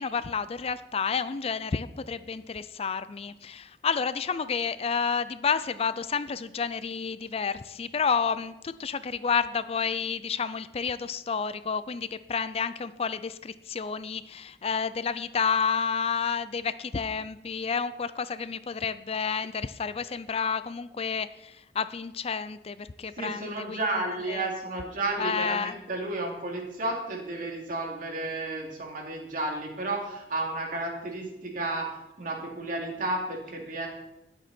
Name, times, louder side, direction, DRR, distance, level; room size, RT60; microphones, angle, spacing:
voice 1, 0.0-23.9 24.3-24.5 25.2-25.7, left 6 dB, 35° left, 14 dB, 0.4 m, -30 dB
voice 2, 23.2-33.9, right 2 dB, 50° right, 0 dB, 2.8 m, -32 dB
19.5 x 8.1 x 4.4 m, 0.90 s
head